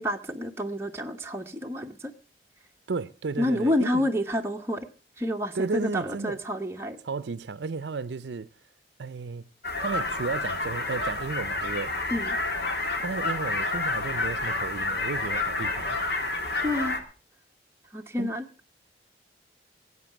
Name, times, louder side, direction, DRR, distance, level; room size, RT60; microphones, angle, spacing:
voice 1, 0.0-2.1 3.4-4.9 5.2-7.0 12.1-12.4 16.6-17.0 17.9-18.4, left 1 dB, 15° right, 0.9 m, -29 dB
voice 2, 2.9-4.1 5.5-6.4 7.0-8.5 9.0-9.4 9.8-11.9 13.0-16.0 18.2-18.3, right 4 dB, 80° right, 0.5 m, -33 dB
sound 1, 9.6-17.0, left 2 dB, 65° left, 2.0 m, -29 dB
18.5 x 8.2 x 5.9 m
head